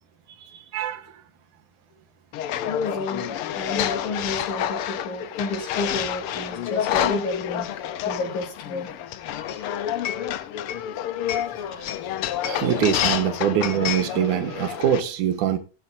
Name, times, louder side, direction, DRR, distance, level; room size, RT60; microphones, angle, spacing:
voice 1, 0.7-1.0 11.8-11.9 12.4-15.6, right 9 dB, 85° right, 2.7 m, -23 dB
sound 1, 2.3-15.0, left 11 dB, 85° left, 1.2 m, -28 dB
voice 2, 2.7-7.7 8.0-8.9, left 3 dB, 70° left, 4.2 m, -30 dB
16.0 x 12.0 x 2.6 m
omnidirectional pair, 3.5 m